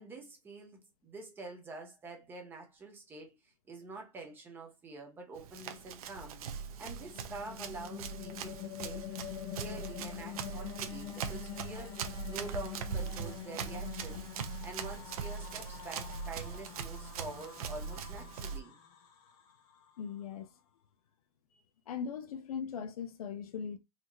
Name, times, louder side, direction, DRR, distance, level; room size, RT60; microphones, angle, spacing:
voice 1, 0.0-6.4 6.8-9.0 9.5-12.0 12.3-14.3 14.6-18.8, right 3 dB, 10° right, 0.8 m, -46 dB
Run, 5.4-18.6, right 6 dB, 75° right, 0.8 m, -41 dB
sound 1, 6.6-20.0, left 11 dB, 25° left, 0.6 m, -46 dB
voice 2, 20.0-20.5 21.9-23.8, left 7 dB, 80° left, 0.8 m, -39 dB
4.2 x 2.8 x 3.0 m
supercardioid pair, 165°, 18 cm